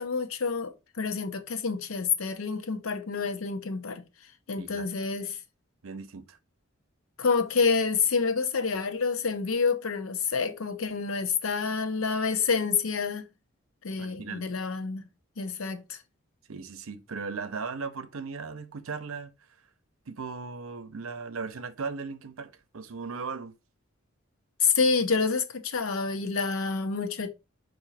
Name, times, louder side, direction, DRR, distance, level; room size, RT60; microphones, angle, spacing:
voice 1, 0.0-4.0 4.5-5.4 7.2-13.3 13.8-15.0 15.4-16.0 24.6-27.3, left 5 dB, 80° left, 0.7 m, -28 dB
voice 2, 5.8-6.4 14.0-14.4 16.5-19.3 20.1-23.5, right 4 dB, 75° right, 0.6 m, -37 dB
4.9 x 2.6 x 4.1 m
head